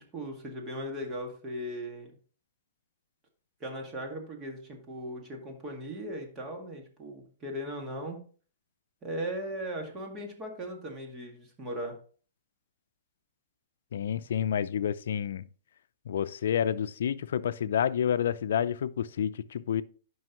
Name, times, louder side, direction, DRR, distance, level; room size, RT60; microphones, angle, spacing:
voice 1, 0.0-2.1 3.6-8.2 9.0-12.0, equal, 20° right, 1.9 m, -38 dB
voice 2, 13.9-15.4 16.1-19.8, left 9 dB, 75° left, 0.5 m, -29 dB
11.0 x 5.4 x 3.0 m
hypercardioid pair, 150°, 0 cm